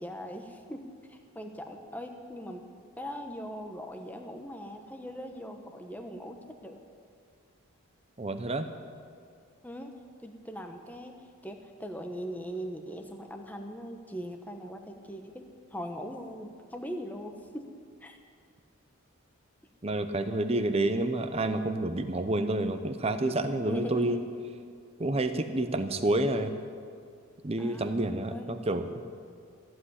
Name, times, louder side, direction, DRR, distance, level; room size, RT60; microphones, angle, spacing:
voice 1, 0.0-2.7 3.0-6.8 9.6-17.7 18.0-18.2 23.7-24.2 27.6-28.0 28.3-28.6, equal, 5° left, 5 dB, 0.9 m, -40 dB
voice 2, 8.2-8.7 19.8-24.2 25.0-26.6 27.4-28.9, right 2 dB, 25° right, 8 dB, 0.7 m, -29 dB
14.5 x 7.9 x 9.8 m, 2.2 s
head